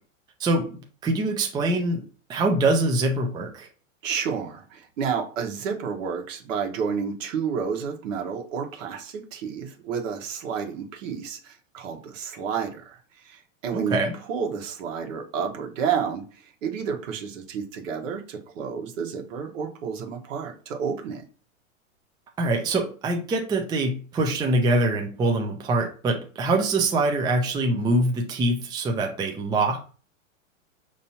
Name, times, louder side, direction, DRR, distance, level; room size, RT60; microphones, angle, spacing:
voice 1, 0.4-2.0 2.3-3.7 13.7-14.1 22.4-29.9, right 2 dB, 10° right, 2 dB, 0.5 m, -24 dB
voice 2, 4.0-13.0 13.3-14.0 14.3-16.2 16.6-21.2, right 6 dB, 70° right, 3 dB, 1.3 m, -30 dB
5.7 x 2.9 x 2.8 m, 0.39 s
hypercardioid pair, 125°, 40 cm